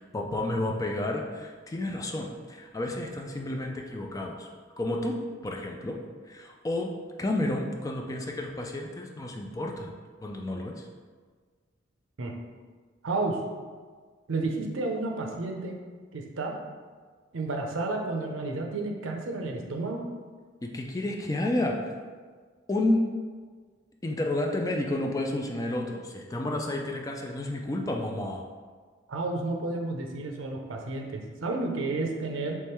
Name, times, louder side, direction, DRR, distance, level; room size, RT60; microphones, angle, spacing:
voice 1, 0.0-4.5 4.8-6.0 6.3-6.9 7.2-9.9 10.2-10.9 20.6-21.9 22.7-23.0 24.0-28.4, left 1 dB, 15° left, 1 dB, 0.3 m, -31 dB
voice 2, 13.0-13.4 14.3-15.7 16.1-16.5 17.3-20.1 29.1-32.6, right 2 dB, 80° right, 2 dB, 0.6 m, -31 dB
3.5 x 3.1 x 4.4 m, 1.5 s
head